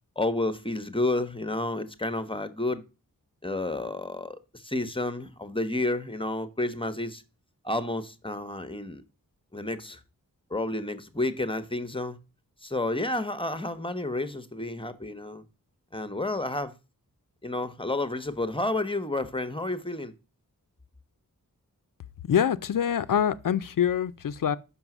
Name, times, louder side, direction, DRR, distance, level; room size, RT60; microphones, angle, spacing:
voice 1, 0.2-2.8 3.4-7.2 7.6-9.0 9.5-10.0 10.5-12.2 12.6-15.4 15.9-16.7 17.4-20.1, left 2 dB, 15° left, 0.9 m, -30 dB
voice 2, 22.3-24.6, left 9 dB, 65° left, 0.5 m, -25 dB
5.8 x 5.4 x 5.9 m
wide cardioid pair, 55°, 35 cm